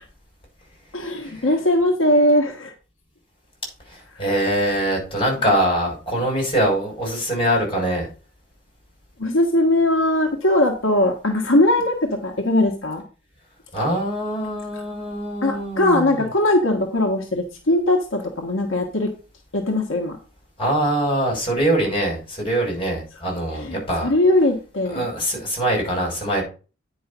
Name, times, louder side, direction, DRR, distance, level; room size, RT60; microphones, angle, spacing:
voice 1, 0.9-2.7 9.2-13.0 15.4-19.1 19.5-20.2 23.5-25.1, left 1 dB, 75° left, 2 dB, 1.5 m, -20 dB
voice 2, 3.9-8.1 13.7-16.3 20.6-24.1 24.9-26.4, right 1 dB, 30° left, 0 dB, 5.8 m, -23 dB
9.5 x 5.5 x 5.3 m, 0.35 s
head